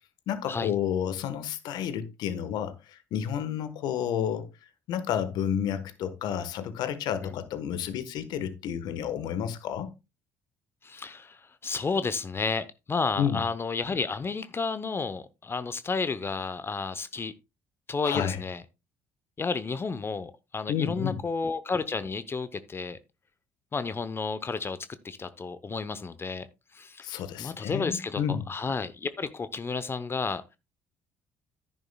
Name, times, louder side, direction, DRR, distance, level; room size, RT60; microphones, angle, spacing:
voice 1, 0.3-4.5 4.9-9.9 13.2-13.4 18.0-18.4 20.7-21.2 27.0-28.4, left 9 dB, 65° left, 1.3 m, -30 dB
voice 2, 10.8-17.3 17.9-18.6 19.4-23.0 23.7-24.8 25.0-26.5 26.7-27.1 27.4-30.4, left 4 dB, 30° left, 0.8 m, -31 dB
10.5 x 10.5 x 2.3 m
hypercardioid pair, 55°, 8 cm